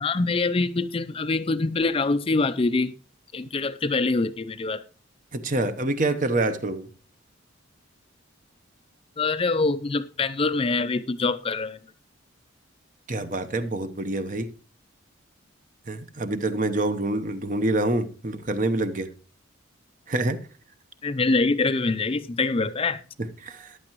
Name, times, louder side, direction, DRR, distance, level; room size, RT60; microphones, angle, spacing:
voice 1, 0.0-2.9 3.3-4.8 9.2-11.8 21.0-23.0, left 3 dB, 25° left, 0.4 m, -24 dB
voice 2, 5.3-6.9 13.1-14.5 15.9-19.1 20.1-20.4 23.2-23.8, right 2 dB, 40° right, 0.9 m, -26 dB
14.5 x 11.0 x 3.0 m
head